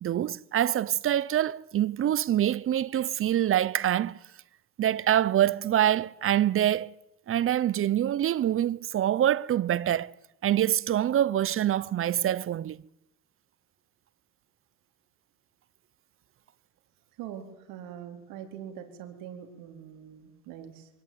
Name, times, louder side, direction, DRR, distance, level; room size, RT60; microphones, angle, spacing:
voice 1, 0.0-4.2 4.8-6.9 7.3-10.1 10.4-12.8, right 11 dB, 40° right, 0.9 m, -25 dB
voice 2, 17.2-20.9, right 9 dB, 80° right, 4.3 m, -43 dB
24.0 x 18.5 x 9.5 m
cardioid pair, 110°, 34 cm